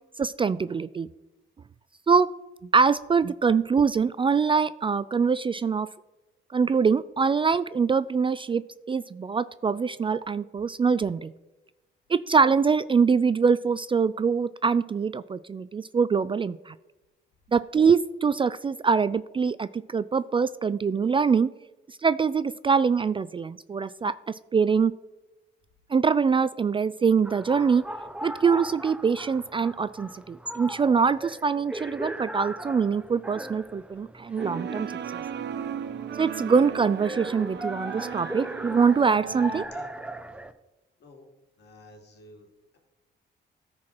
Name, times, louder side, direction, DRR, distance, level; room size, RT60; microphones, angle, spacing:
voice 1, 0.2-1.1 2.1-2.3 2.7-5.9 6.5-8.6 8.9-11.3 12.1-16.7 17.5-21.5 22.0-24.9 25.9-27.8 28.2-34.9 35.1-35.2 36.2-39.6, right 5 dB, 25° right, 16 dB, 0.3 m, -24 dB
sound 1, 27.2-40.5, right 1 dB, 5° right, 0.7 m, -38 dB
sound 2, 34.4-39.7, right 8 dB, 60° right, 0.8 m, -36 dB
voice 2, 41.6-42.5, left 2 dB, 60° left, 3 dB, 2.8 m, -50 dB
13.5 x 4.8 x 6.0 m, 1.0 s
cardioid pair, 90°, 20 cm